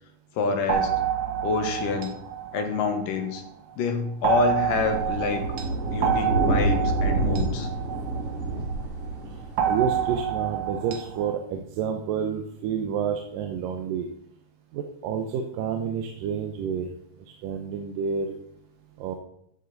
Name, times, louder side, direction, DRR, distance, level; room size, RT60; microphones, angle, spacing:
voice 1, 0.4-0.9 1.4-2.1 2.5-3.4 3.8-5.4 5.9-7.7, left 4 dB, 85° left, 5 dB, 2.9 m, -27 dB
sound 1, 0.7-3.5 4.2-8.8 9.6-11.4, right 9 dB, 70° right, 2.2 m, -28 dB
sound 2, 4.7-10.2, right 2 dB, 50° right, 5.4 m, -28 dB
voice 2, 9.7-14.1 14.7-16.9 17.3-18.4 19.0-19.2, right 7 dB, 90° right, 4 dB, 2.5 m, -29 dB
13.0 x 6.9 x 4.0 m, 0.72 s
omnidirectional pair, 3.8 m